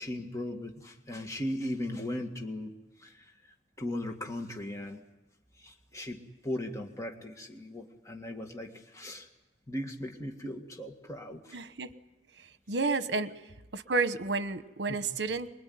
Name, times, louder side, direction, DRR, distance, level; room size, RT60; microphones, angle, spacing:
voice 1, 0.0-2.7 3.0-5.0 5.6-9.3 9.7-11.6 14.9-15.0, left 1 dB, 20° left, 2 dB, 1.9 m, -38 dB
voice 2, 11.5-11.9 12.4-13.3 13.7-15.5, right 3 dB, 70° right, 12 dB, 1.1 m, -31 dB
25.0 x 22.0 x 9.5 m, 1.0 s
head